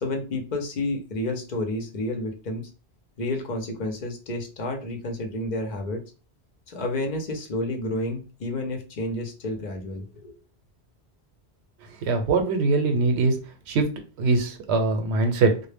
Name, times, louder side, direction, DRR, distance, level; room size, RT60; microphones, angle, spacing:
voice 1, 0.0-2.7 3.2-6.0 6.7-10.3, left 1 dB, 50° left, 3 dB, 0.7 m, -30 dB
voice 2, 12.0-13.4 13.7-13.9 14.2-15.7, right 3 dB, 80° right, 6 dB, 0.9 m, -22 dB
2.1 x 2.0 x 3.2 m, 0.34 s
omnidirectional pair, 1.1 m